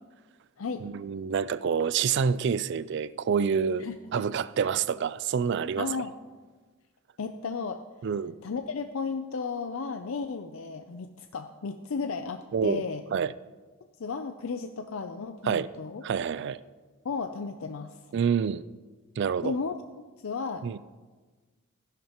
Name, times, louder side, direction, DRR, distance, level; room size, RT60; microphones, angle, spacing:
voice 1, 0.8-3.9 4.1-5.9 8.0-8.3 12.5-12.8 13.1-13.3 15.5-15.7 16.0-16.6 18.1-18.6 19.2-19.5 20.6-20.8, right 6 dB, 55° right, 0.3 m, -27 dB
voice 2, 3.8-4.2 4.6-4.7 5.8-6.1 7.2-7.8 8.4-13.0 14.0-16.0 17.0-18.0 19.4-20.8, left 4 dB, 70° left, 0.5 m, -34 dB
14.5 x 11.0 x 3.0 m
head